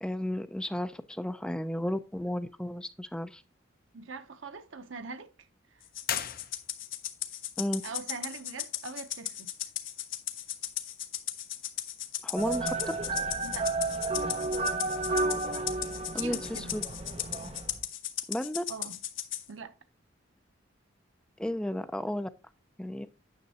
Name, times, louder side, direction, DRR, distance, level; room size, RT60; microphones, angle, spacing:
voice 1, 0.0-3.4 7.6-7.8 12.2-12.7 16.1-16.8 18.3-18.6 21.4-22.3 22.8-23.1, left 1 dB, 5° left, 0.3 m, -33 dB
voice 2, 3.9-5.8 7.8-9.5 13.4-13.7 16.1-16.8 18.7-19.0 19.5-19.7, right 4 dB, 80° right, 0.8 m, -42 dB
Rattle (instrument), 5.9-19.4, left 12 dB, 85° left, 1.0 m, -36 dB
sound 1, 6.0-7.1, left 9 dB, 50° left, 0.6 m, -36 dB
sound 2, 12.4-17.8, right 3 dB, 30° right, 0.8 m, -32 dB
9.4 x 6.3 x 2.9 m
head